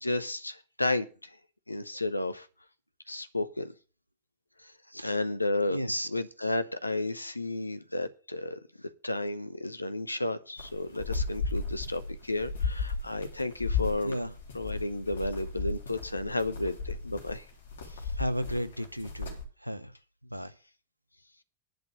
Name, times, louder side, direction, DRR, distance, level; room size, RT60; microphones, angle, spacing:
voice 1, 0.0-1.3 1.7-2.5 3.1-3.7 5.0-5.8 6.1-8.6 9.0-14.2 14.5-17.4, left 2 dB, 85° left, 0.8 m, -32 dB
voice 2, 5.7-6.1 14.0-14.3 18.2-19.4 19.6-19.9 20.3-20.5, equal, 90° right, 0.8 m, -33 dB
sound 1, 10.6-19.4, left 4 dB, 65° left, 3.2 m, -35 dB
11.0 x 6.7 x 6.4 m
figure-of-eight pair, 90°, 0 cm